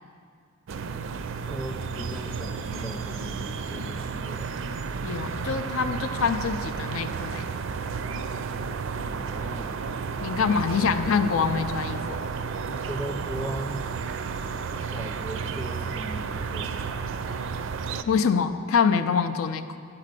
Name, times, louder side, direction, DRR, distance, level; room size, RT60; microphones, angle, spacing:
sound 1, 0.7-18.0, right 5 dB, 65° right, 0.4 m, -32 dB
voice 1, 1.4-4.5 9.2-9.8 12.6-13.9 14.9-17.1, right 1 dB, 5° left, 3 dB, 0.4 m, -38 dB
voice 2, 5.0-7.4 10.2-12.2 18.1-19.8, left 6 dB, 80° left, 8 dB, 0.4 m, -25 dB
10.5 x 4.2 x 6.7 m, 2.2 s
head